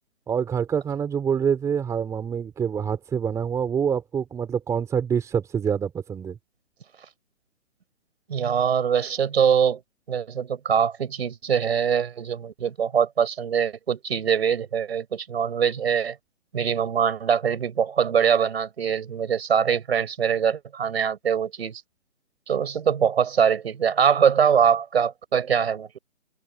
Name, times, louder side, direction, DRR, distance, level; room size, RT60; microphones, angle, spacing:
voice 1, 0.3-6.4, right 7 dB, 5° right, 4.2 m, -26 dB
voice 2, 8.3-9.8 10.1-16.2 16.5-21.8 22.5-26.0, right 7 dB, 50° right, 5.6 m, -23 dB
open air
figure-of-eight pair, 150°, 40 cm